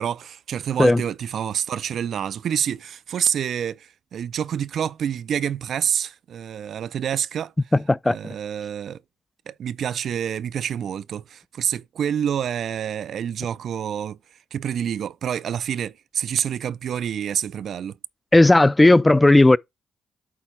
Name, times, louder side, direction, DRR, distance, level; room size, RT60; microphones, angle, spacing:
voice 1, 0.0-7.5 8.1-9.0 9.5-14.2 14.5-18.0, right 9 dB, 65° right, 0.3 m, -27 dB
voice 2, 7.7-8.2 18.3-19.6, left 2 dB, 20° left, 0.4 m, -14 dB
8.4 x 3.6 x 4.4 m
hypercardioid pair, 45°, 0 cm